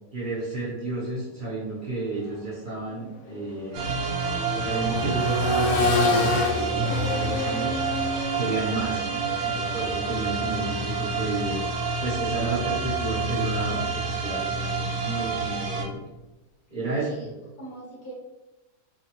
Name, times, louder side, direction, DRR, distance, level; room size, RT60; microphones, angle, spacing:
voice 1, 0.1-4.0 4.5-7.7 8.4-9.1 9.7-11.6 12.0-16.0 16.7-17.3, right 2 dB, 40° right, -7 dB, 0.8 m, -31 dB
Accelerating revving vroom, 2.1-2.3 2.7-12.6 14.3-14.4, left 2 dB, 85° left, 1.2 m, -30 dB
sound 1, 3.7-15.8, right 4 dB, 65° right, 1.0 m, -28 dB
voice 2, 9.1-9.4 16.9-18.1, right 2 dB, 40° left, -6 dB, 0.7 m, -42 dB
2.9 x 2.0 x 2.9 m, 1.0 s
omnidirectional pair, 1.8 m